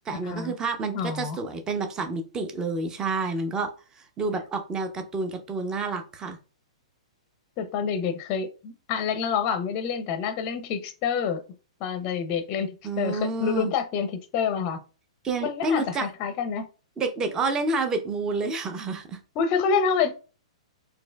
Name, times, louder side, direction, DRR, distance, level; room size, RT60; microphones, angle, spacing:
voice 1, 0.1-3.7 4.0-6.4 12.8-13.7 15.2-16.1 17.0-19.2, right 3 dB, 20° right, 0.6 m, -29 dB
voice 2, 0.9-1.4 7.6-11.4 11.8-14.8 15.4-16.7 19.4-20.1, left 6 dB, 35° left, 0.5 m, -27 dB
4.1 x 2.7 x 2.2 m
hypercardioid pair, 125°, 4 cm